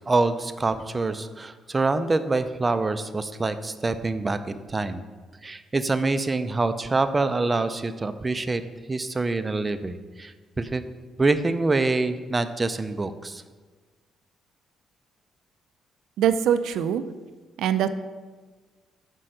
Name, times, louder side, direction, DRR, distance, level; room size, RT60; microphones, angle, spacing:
voice 1, 0.0-5.0 5.4-8.6 8.9-10.8 11.2-13.4, right 3 dB, 25° right, 11 dB, 0.5 m, -25 dB
voice 2, 16.2-17.0 17.6-17.9, right 9 dB, 80° right, 11 dB, 0.4 m, -22 dB
5.7 x 4.5 x 6.4 m, 1.4 s
cardioid pair, 90°, 0 cm